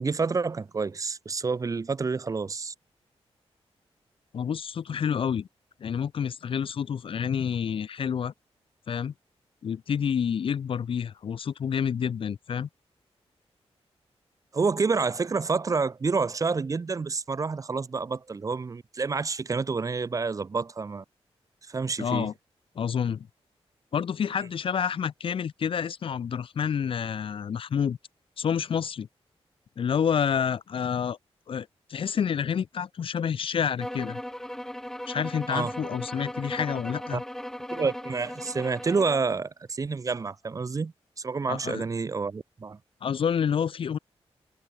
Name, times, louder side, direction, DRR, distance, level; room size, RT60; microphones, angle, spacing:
voice 1, 0.0-2.7 14.5-21.0 21.7-22.3 35.5-35.7 37.1-37.2 37.7-42.8, right 4 dB, 30° right, 1.1 m, -28 dB
voice 2, 4.3-5.5 5.8-8.3 8.9-9.1 9.6-12.7 22.0-22.3 22.8-23.3 23.9-28.0 28.4-29.1 29.8-31.2 31.5-34.2 35.1-37.2 41.5-41.8 43.0-44.0, left 7 dB, 55° left, 0.6 m, -28 dB
sound 1, 33.8-39.3, equal, 5° left, 2.2 m, -37 dB
wide cardioid pair, 170°, 11 cm